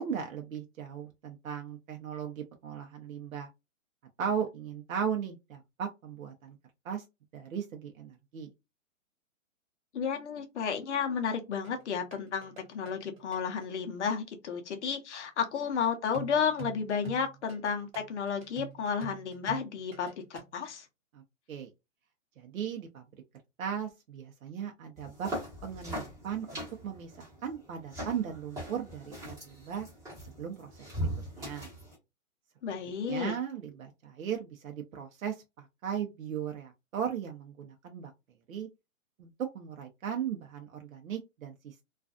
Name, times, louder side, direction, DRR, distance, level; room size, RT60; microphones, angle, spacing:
voice 1, 0.0-3.5 4.2-6.6 6.8-7.0 7.3-8.5 21.1-21.2 21.5-21.7 22.4-23.0 23.6-25.3 25.6-29.9 30.4-30.7 31.4-31.7 33.1-38.1 38.5-38.7 39.2-41.8, right 8 dB, 85° right, 0.7 m, -37 dB
voice 2, 9.9-20.9 32.6-33.3, left 6 dB, 60° left, 0.7 m, -32 dB
sound 1, 11.6-13.7 16.1-20.5, right 12 dB, 35° right, 0.8 m, -46 dB
sound 2, 25.0-31.9, right 1 dB, 10° right, 0.9 m, -40 dB
2.5 x 2.3 x 2.4 m
hypercardioid pair, 160°, 40 cm